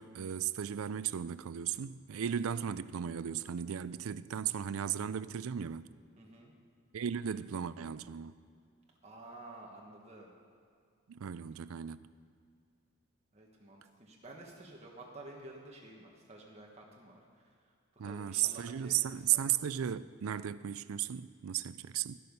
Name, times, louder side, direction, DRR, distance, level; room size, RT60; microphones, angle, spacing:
voice 1, 0.0-5.9 6.9-8.4 11.1-12.1 18.0-22.2, right 9 dB, 85° right, 0.4 m, -35 dB
voice 2, 6.2-6.5 9.0-10.3 13.3-17.6 18.0-19.4, right 2 dB, 30° right, 1.4 m, -51 dB
12.5 x 12.0 x 5.4 m
head